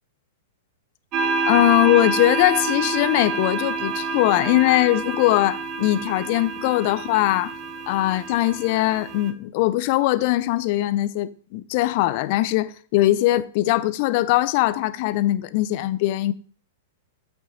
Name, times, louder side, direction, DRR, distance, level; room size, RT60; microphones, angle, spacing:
sound 1, 1.1-9.3, right 3 dB, 40° right, 1.3 m, -28 dB
voice 1, 1.5-7.5 7.9-16.3, left 16 dB, 50° left, 0.6 m, -21 dB
8.1 x 6.1 x 4.0 m
figure-of-eight pair, 105°, 0 cm